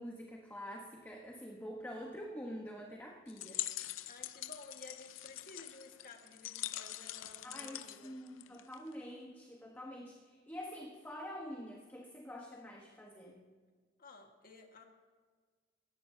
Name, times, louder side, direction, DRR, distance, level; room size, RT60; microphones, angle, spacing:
voice 1, 0.0-3.6 7.4-13.4, equal, 10° left, -1 dB, 1.2 m, -46 dB
sound 1, 3.3-8.9, left 14 dB, 90° left, 0.5 m, -44 dB
voice 2, 4.1-8.2 14.0-14.8, left 3 dB, 50° left, 2 dB, 1.8 m, -54 dB
18.0 x 15.0 x 2.8 m, 1.5 s
head